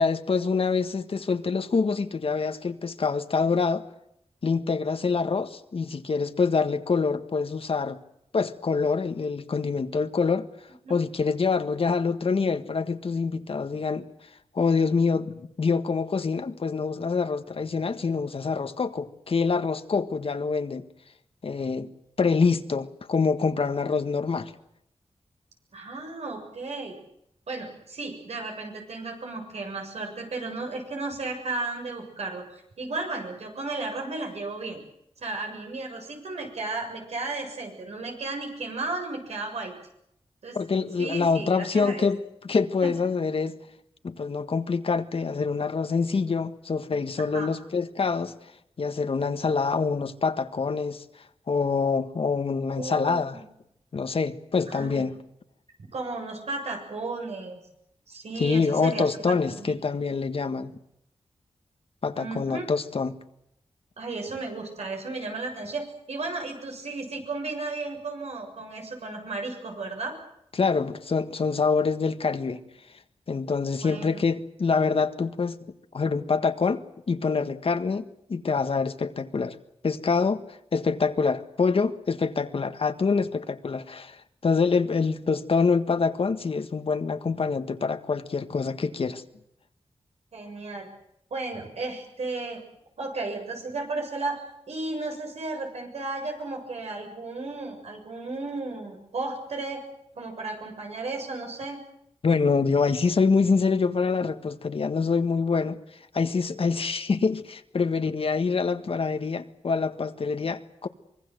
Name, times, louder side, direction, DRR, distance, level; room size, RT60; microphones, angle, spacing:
voice 1, 0.0-3.8 4.4-8.0 8.3-10.5 10.9-14.1 14.5-20.9 21.4-21.9 22.2-24.5 40.5-42.2 42.4-43.6 44.0-48.3 48.8-51.0 51.5-53.4 53.9-55.1 58.4-60.7 62.0-63.2 70.5-72.6 73.3-75.6 75.9-79.5 79.8-80.5 80.7-89.2 102.2-105.8 106.1-110.9, left 4 dB, 60° left, 10 dB, 1.6 m, -25 dB
voice 2, 25.7-27.0 27.5-34.8 35.2-39.7 40.4-40.6 41.0-42.0 42.8-42.9 47.2-47.5 52.8-53.4 54.7-55.0 55.9-57.6 58.1-59.7 62.2-62.7 64.0-70.1 73.8-74.2 90.3-90.9 91.3-92.6 93.0-99.8 100.2-101.8, right 3 dB, 85° right, 3 dB, 7.2 m, -34 dB
25.0 x 22.5 x 8.0 m, 0.77 s
wide cardioid pair, 100°, 11 cm